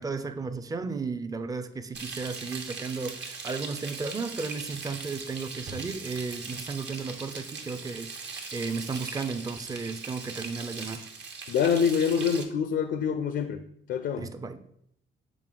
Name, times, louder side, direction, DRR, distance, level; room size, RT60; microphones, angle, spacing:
voice 1, 0.0-11.1 14.2-14.6, right 4 dB, 20° right, 10 dB, 0.4 m, -34 dB
Frying (food), 1.9-12.4, right 4 dB, 60° right, 1.1 m, -40 dB
voice 2, 11.5-13.6 13.9-14.3, left 7 dB, 65° left, 9 dB, 0.4 m, -26 dB
6.0 x 4.4 x 3.7 m, 0.73 s
cardioid pair, 90°, 20 cm